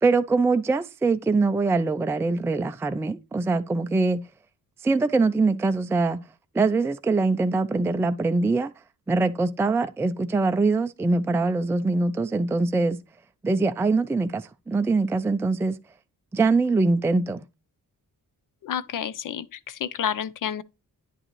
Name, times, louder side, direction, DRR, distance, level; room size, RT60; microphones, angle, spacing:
voice 1, 0.0-4.2 4.8-6.2 6.5-8.7 9.1-13.0 13.4-15.8 16.3-17.4, right 3 dB, 10° right, 0.3 m, -23 dB
voice 2, 18.6-19.4 19.8-20.6, left 9 dB, 70° left, 0.6 m, -29 dB
9.9 x 6.5 x 3.0 m
wide cardioid pair, 155°, 33 cm